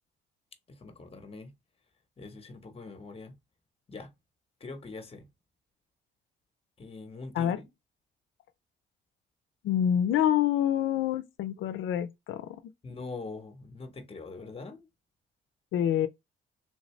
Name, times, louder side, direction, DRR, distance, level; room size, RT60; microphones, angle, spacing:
voice 1, 0.7-1.6 2.2-3.4 3.9-4.1 4.6-5.3 6.8-7.7 12.8-14.9, left 3 dB, 30° left, 0.9 m, -43 dB
voice 2, 9.6-12.6 15.7-16.1, left 10 dB, 80° left, 0.4 m, -27 dB
3.5 x 2.6 x 3.1 m
cardioid pair, 90°, 20 cm